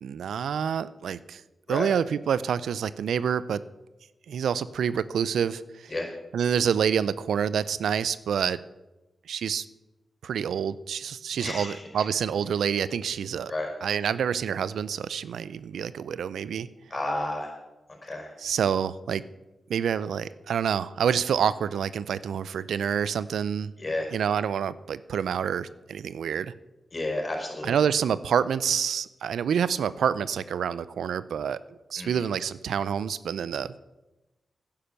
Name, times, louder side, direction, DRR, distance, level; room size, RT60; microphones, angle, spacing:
voice 1, 0.0-1.4 1.7-3.6 4.3-5.9 6.3-8.6 9.3-9.6 10.2-13.5 13.8-16.7 18.4-19.2 19.7-23.7 24.1-26.5 27.6-31.6 31.9-33.7, right 8 dB, 85° right, 17 dB, 0.4 m, -27 dB
voice 2, 11.4-12.0 13.5-13.7 16.9-17.5 18.0-18.3 23.8-24.1 26.9-27.8 32.0-32.2, left 2 dB, 40° left, 2 dB, 4.8 m, -31 dB
10.5 x 10.0 x 6.9 m, 1.0 s
cardioid pair, 50°, 0 cm